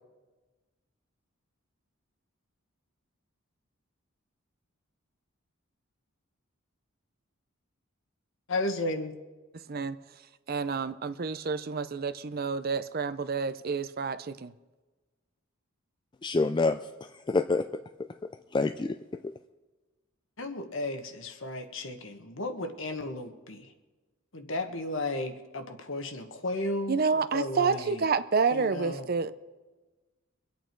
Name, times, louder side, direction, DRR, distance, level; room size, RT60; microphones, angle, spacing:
voice 1, 8.5-9.1 20.4-23.7 24.3-27.0 27.3-28.0 28.5-29.1, left 2 dB, 65° left, 1.3 m, -34 dB
voice 2, 10.5-14.5 26.9-29.3, right 5 dB, 45° right, 0.5 m, -29 dB
voice 3, 16.2-17.7 18.0-19.0 19.2-19.4, left 3 dB, 20° left, 0.3 m, -28 dB
23.5 x 8.7 x 4.6 m
head